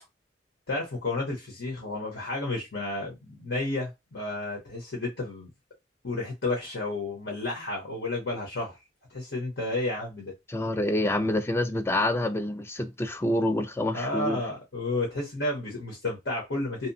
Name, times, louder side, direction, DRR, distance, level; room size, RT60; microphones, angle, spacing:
voice 1, 0.7-5.5 6.0-8.8 9.1-10.3 13.9-16.9, left 2 dB, 70° left, 0.9 m, -31 dB
voice 2, 10.5-14.4, left 1 dB, 15° left, 0.3 m, -27 dB
2.8 x 2.1 x 2.6 m
head